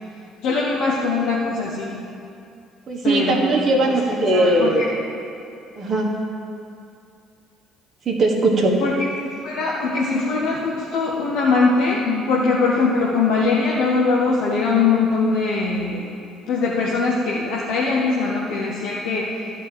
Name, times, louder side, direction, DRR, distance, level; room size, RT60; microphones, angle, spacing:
voice 1, 0.4-2.0 3.0-3.6 4.1-4.9 8.8-16.0 16.5-19.4, left 4 dB, 65° left, -4 dB, 1.1 m, -21 dB
voice 2, 2.9-4.9 5.8-6.1 8.1-8.8, right 2 dB, 40° right, -1 dB, 1.3 m, -19 dB
12.0 x 4.5 x 7.7 m, 2.6 s
hypercardioid pair, 55°, 0 cm